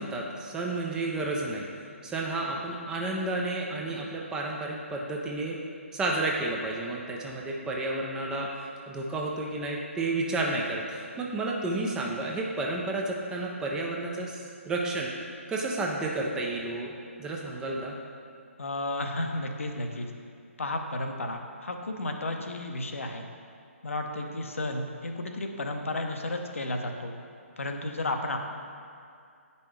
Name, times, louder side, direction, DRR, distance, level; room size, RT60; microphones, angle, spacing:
voice 1, 0.0-1.7 2.0-5.6 5.9-15.1 15.5-16.9 17.2-18.0, right 2 dB, 10° right, -1 dB, 0.4 m, -31 dB
voice 2, 18.6-20.1 20.6-23.2 23.8-27.1 27.6-28.4, left 2 dB, 65° left, 4 dB, 0.7 m, -33 dB
9.1 x 5.4 x 3.2 m, 2.3 s
figure-of-eight pair, 140°, 8 cm